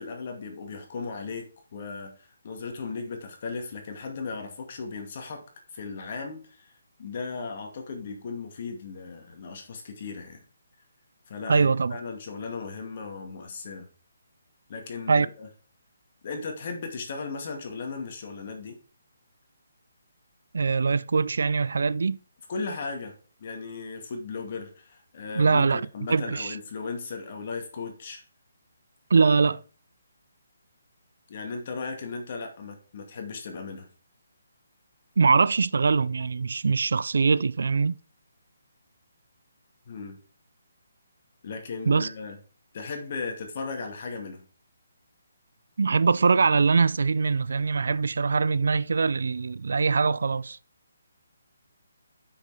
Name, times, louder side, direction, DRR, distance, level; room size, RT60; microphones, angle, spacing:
voice 1, 0.0-1.5 1.7-5.5 5.7-6.7 7.0-10.4 11.3-13.9 14.7-15.5 16.2-18.8 22.5-23.1 23.4-28.2 31.3-33.9 39.9-40.2 41.4-42.4 42.7-44.4, left 4 dB, 40° left, 2.3 m, -36 dB
voice 2, 11.5-12.0 15.1-15.3 20.5-22.2 25.4-25.8 26.1-26.6 29.1-29.6 35.2-37.9 41.9-42.1 45.8-50.6, right 4 dB, 70° right, 0.4 m, -22 dB
8.1 x 6.5 x 4.9 m
hypercardioid pair, 165°, 0 cm